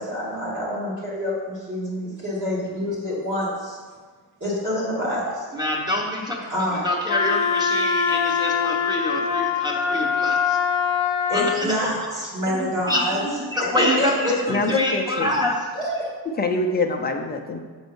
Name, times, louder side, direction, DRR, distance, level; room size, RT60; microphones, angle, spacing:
voice 1, 0.0-3.8 4.4-5.5 6.5-6.8 11.3-13.2 14.0-14.7 15.7-16.1, left 1 dB, 40° right, -7 dB, 2.3 m, -26 dB
voice 2, 5.5-6.4 6.8-10.6 11.3-11.9 12.5-15.7, left 1 dB, 10° right, -2 dB, 1.0 m, -26 dB
Wind instrument woodwind instrument, 7.1-11.6, left 6 dB, 80° left, 0.6 m, -23 dB
voice 3, 14.5-15.3 16.4-17.6, left 3 dB, 20° left, 3 dB, 0.4 m, -24 dB
7.1 x 4.3 x 5.4 m, 1.5 s
wide cardioid pair, 175°, 46 cm